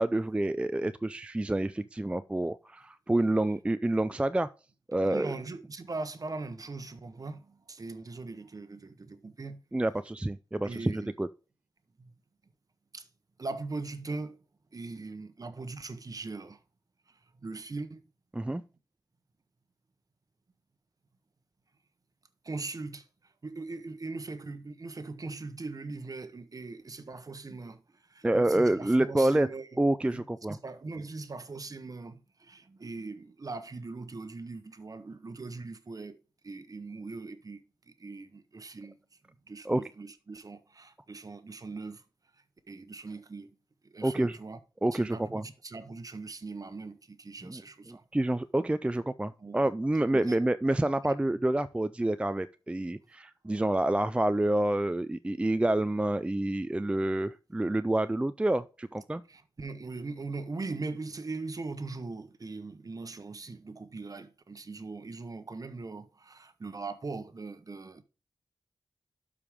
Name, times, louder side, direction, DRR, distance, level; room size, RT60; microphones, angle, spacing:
voice 1, 0.0-4.5 4.9-5.3 9.7-11.3 18.3-18.6 28.2-29.5 29.8-30.6 39.7-39.8 44.0-44.4 44.8-45.4 47.4-47.6 47.9-59.2, right 1 dB, 15° right, 0.4 m, -28 dB
voice 2, 5.0-9.6 10.6-11.1 12.0-12.1 12.9-13.1 13.4-14.4 14.7-16.6 17.1-18.0 22.4-29.7 30.1-39.0 39.3-42.0 42.3-43.5 43.8-44.6 44.9-48.1 49.4-49.6 50.1-50.4 59.3-68.0, right 3 dB, 45° right, 1.0 m, -40 dB
12.0 x 5.0 x 3.6 m
cardioid pair, 60°, 9 cm